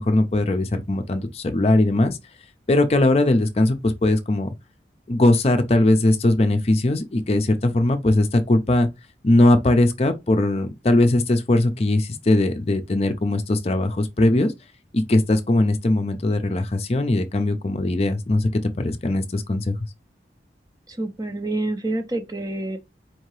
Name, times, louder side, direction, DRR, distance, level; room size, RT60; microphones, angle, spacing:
voice 1, 0.0-2.2 2.7-4.5 5.1-8.9 9.2-14.5 14.9-19.8, left 1 dB, 35° left, 0.5 m, -20 dB
voice 2, 20.9-22.8, right 2 dB, 20° right, 0.5 m, -27 dB
4.5 x 2.8 x 3.1 m
head